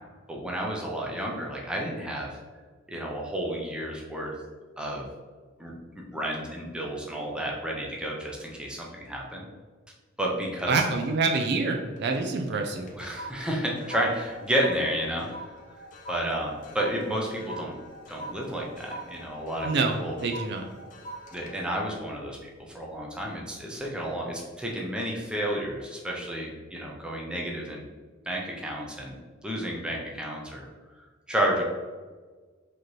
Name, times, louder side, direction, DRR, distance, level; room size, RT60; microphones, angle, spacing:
voice 1, 0.3-2.3 2.9-4.3 4.8-5.1 5.6-5.7 6.1-9.5 10.2-10.8 12.9-15.3 16.1-17.7 18.1-19.7 20.0-20.2 21.3-27.9 28.3-30.6 31.3-31.6, right 1 dB, 5° right, -2 dB, 0.6 m, -31 dB
voice 2, 10.7-12.9 19.6-19.9 20.2-20.6, right 4 dB, 55° right, 4 dB, 0.4 m, -26 dB
sound 1, 11.9-12.1 12.5-23.0 23.5-23.8, right 1 dB, 40° left, 0.6 m, -44 dB
5.0 x 3.0 x 3.0 m, 1.4 s
head